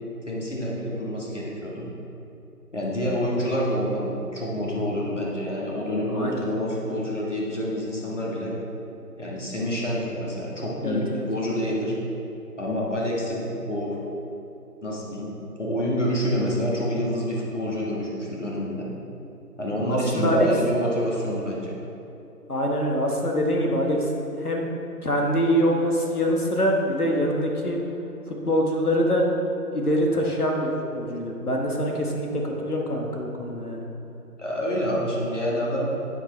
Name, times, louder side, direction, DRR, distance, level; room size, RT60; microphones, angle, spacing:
voice 1, 0.3-1.9 2.7-8.6 9.2-12.0 12.6-14.0 14.8-18.9 19.6-21.7 34.4-35.9, equal, 45° left, -4 dB, 1.9 m, -27 dB
voice 2, 6.1-6.4 10.8-11.2 19.9-20.5 22.5-24.1 24.4-24.7 25.0-27.8 28.3-29.3 29.7-33.9, equal, 65° left, 0 dB, 1.6 m, -24 dB
9.2 x 7.4 x 3.4 m, 2.9 s
figure-of-eight pair, 175°, 48 cm